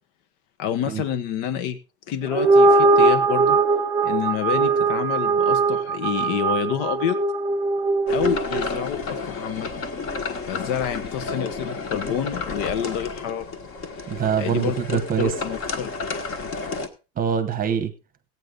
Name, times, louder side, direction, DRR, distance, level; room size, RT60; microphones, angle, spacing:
voice 1, 0.6-1.8 2.1-3.6 4.0-7.2 8.1-9.8 10.4-13.5 14.4-15.9, left 9 dB, 80° left, 11 dB, 1.5 m, -28 dB
sound 1, 2.2-8.8, right 3 dB, 5° right, 1.3 m, -20 dB
sound 2, 8.1-16.9, left 4 dB, 40° left, 1.6 m, -31 dB
voice 2, 14.1-15.4 17.2-17.9, right 8 dB, 25° right, 9 dB, 1.0 m, -24 dB
16.0 x 9.1 x 3.9 m, 0.32 s
cardioid pair, 170°, 35 cm